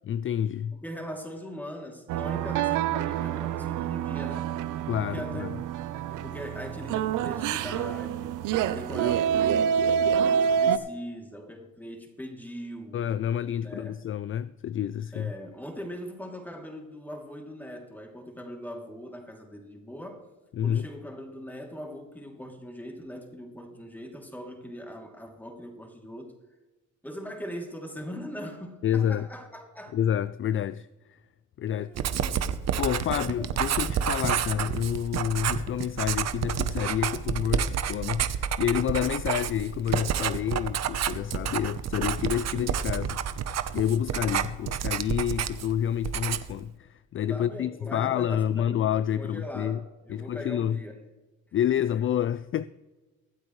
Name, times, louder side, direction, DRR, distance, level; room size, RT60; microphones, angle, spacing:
voice 1, 0.1-0.8 4.9-5.5 12.9-15.3 20.5-20.8 28.8-29.3 29.9-31.2 31.6-31.9 32.8-43.2 43.7-49.8 50.1-50.8 51.5-52.6, left 10 dB, 45° left, 0.4 m, -28 dB
voice 2, 0.8-4.5 5.0-5.5 5.9-13.0 13.6-14.1 15.1-20.3 20.6-26.3 27.0-29.9 31.7-32.4 33.1-33.5 47.3-48.9 49.2-51.0, equal, 5° left, 2.9 m, -41 dB
sound 1, 2.1-10.8, right 8 dB, 90° right, 0.7 m, -27 dB
Writing, 32.0-45.8 46.0-46.6, right 9 dB, 60° right, 0.9 m, -29 dB
24.0 x 8.1 x 3.2 m
cardioid pair, 90°, 30 cm